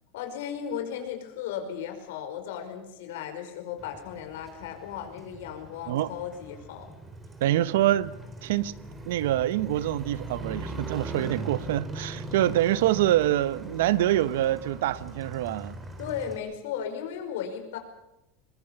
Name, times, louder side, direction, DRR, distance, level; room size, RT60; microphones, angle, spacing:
voice 1, 0.1-6.9 7.5-7.7 16.0-17.8, left 8 dB, 80° left, 5.1 m, -36 dB
Motorcycle, 3.8-16.4, right 2 dB, 15° right, 3.5 m, -40 dB
voice 2, 7.4-8.1 8.4-8.7 9.1-15.7, right 13 dB, 80° right, 0.9 m, -25 dB
23.0 x 22.0 x 7.1 m
supercardioid pair, 130°, 0 cm